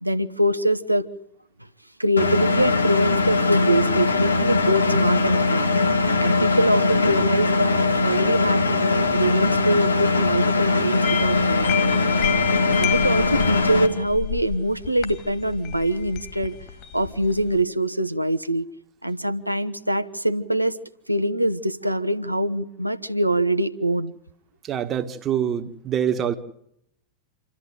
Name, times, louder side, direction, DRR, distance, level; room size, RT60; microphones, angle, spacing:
voice 1, 0.0-1.0 2.0-5.7 6.2-12.2 12.8-16.6 16.9-18.7 19.0-20.8 21.1-24.1, right 1 dB, 90° right, 1.1 m, -24 dB
Engine, 2.2-13.9, left 3 dB, 80° left, 2.2 m, -21 dB
sound 1, 11.0-17.6, left 11 dB, 45° left, 2.7 m, -31 dB
voice 2, 24.7-26.4, right 9 dB, 25° right, 1.7 m, -25 dB
28.0 x 13.5 x 9.4 m
figure-of-eight pair, 90°, 0 cm